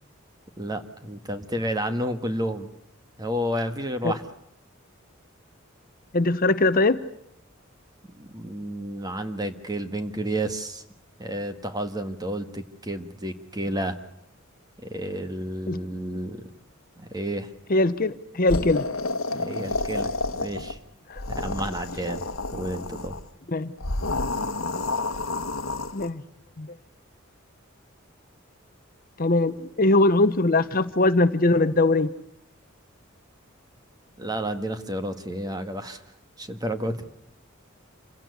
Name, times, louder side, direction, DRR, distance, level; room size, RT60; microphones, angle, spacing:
voice 1, 0.6-2.7 3.2-4.2 8.1-10.8 11.2-14.0 14.8-16.4 17.0-17.5 19.3-20.8 21.3-22.2 22.5-23.1 34.2-36.0 36.4-37.0, right 1 dB, 20° right, 8 dB, 1.7 m, -31 dB
voice 2, 6.1-7.0 15.7-15.8 17.7-18.8 21.1-21.2 23.5-23.7 25.9-26.2 26.6-26.7 29.2-32.1, left 2 dB, 45° left, 13 dB, 0.9 m, -21 dB
sound 1, 18.5-20.8 21.1-23.2 23.8-26.1, left 2 dB, 80° left, 1.3 m, -30 dB
27.5 x 16.5 x 9.5 m, 0.75 s
head